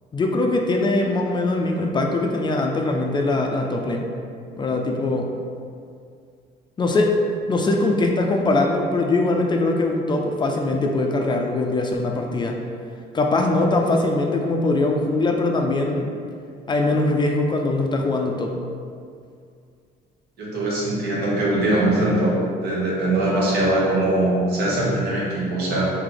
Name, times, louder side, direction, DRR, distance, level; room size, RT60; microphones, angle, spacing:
voice 1, 0.1-4.1 4.6-5.3 6.8-7.1 7.5-12.6 13.1-16.1 16.7-18.5, left 2 dB, 25° left, 2 dB, 0.4 m, -21 dB
voice 2, 20.4-25.9, right 1 dB, 70° right, -5 dB, 1.1 m, -21 dB
3.2 x 2.8 x 3.8 m, 2.2 s
cardioid pair, 110°, 17 cm